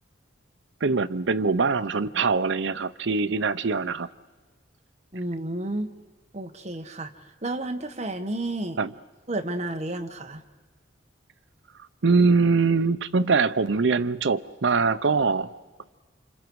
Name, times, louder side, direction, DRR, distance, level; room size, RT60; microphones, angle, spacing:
voice 1, 0.8-4.1 8.8-8.9 12.0-15.5, right 4 dB, 70° right, 0.6 m, -23 dB
voice 2, 5.1-5.9 6.3-7.1 7.4-8.8 9.3-10.4, right 1 dB, 35° right, 1.3 m, -31 dB
29.5 x 27.0 x 4.7 m
head